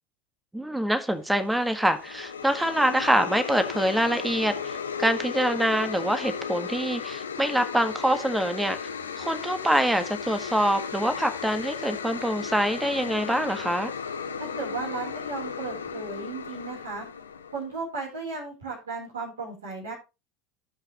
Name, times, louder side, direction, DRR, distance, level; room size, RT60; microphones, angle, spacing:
voice 1, 0.5-8.8 9.2-13.9, right 1 dB, 5° right, 10 dB, 1.5 m, -25 dB
sound 1, 1.3-17.8, left 6 dB, 75° left, 0.9 m, -35 dB
voice 2, 14.5-17.1 17.5-19.9, right 4 dB, 70° right, -4 dB, 3.9 m, -35 dB
16.5 x 5.7 x 3.0 m, 0.27 s
figure-of-eight pair, 75°, 0 cm